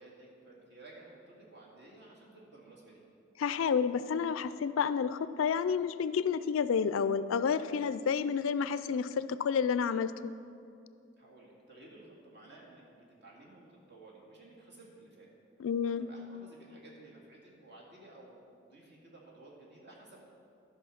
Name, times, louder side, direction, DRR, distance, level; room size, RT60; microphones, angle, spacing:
voice 1, 0.0-3.0 11.2-15.3 15.8-20.2, right 2 dB, 55° right, -3 dB, 2.1 m, -54 dB
voice 2, 3.4-10.1 15.6-16.1, left 6 dB, 75° left, 14 dB, 0.3 m, -30 dB
12.5 x 5.6 x 5.8 m, 2.5 s
head